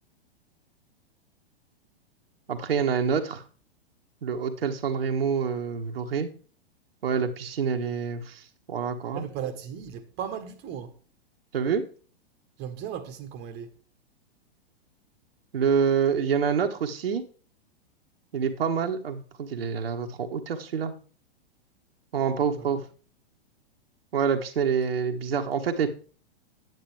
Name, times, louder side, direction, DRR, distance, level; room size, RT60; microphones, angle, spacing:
voice 1, 2.5-3.4 4.2-6.3 7.0-8.4 8.7-9.2 11.5-11.8 15.5-17.2 18.3-20.9 22.1-22.8 24.1-25.9, right 6 dB, 65° right, 1.4 m, -27 dB
voice 2, 9.1-11.0 12.6-13.7 22.5-22.7, right 8 dB, 35° right, 1.3 m, -36 dB
9.5 x 8.7 x 3.4 m
figure-of-eight pair, 105°, 31 cm